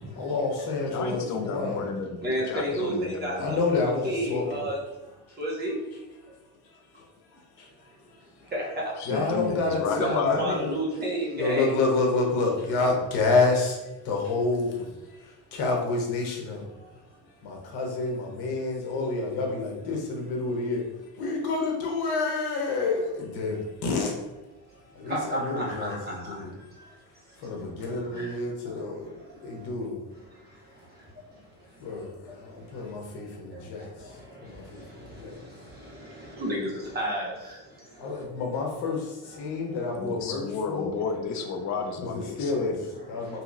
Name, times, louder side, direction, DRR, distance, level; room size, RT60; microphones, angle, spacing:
voice 1, 0.0-1.9 3.4-4.6 5.3-5.4 7.6-8.5 9.1-10.7 11.3-16.9 17.4-24.1 24.9-26.5 26.8-26.9 27.3-30.1 31.8-35.4 38.0-40.9 42.0-42.8 43.1-43.4, left 3 dB, 75° left, 0 dB, 0.9 m, -29 dB
voice 2, 0.9-3.6 9.0-10.7 40.0-42.9, left 5 dB, 50° left, 4 dB, 0.4 m, -32 dB
voice 3, 2.2-4.8 5.4-5.7 8.5-9.2 9.9-11.8 25.1-26.0 26.2-26.3 28.1-28.3 36.4-37.4, right 1 dB, 25° right, -4 dB, 0.8 m, -30 dB
2.8 x 2.8 x 2.5 m, 1.1 s
cardioid pair, 155°, 39 cm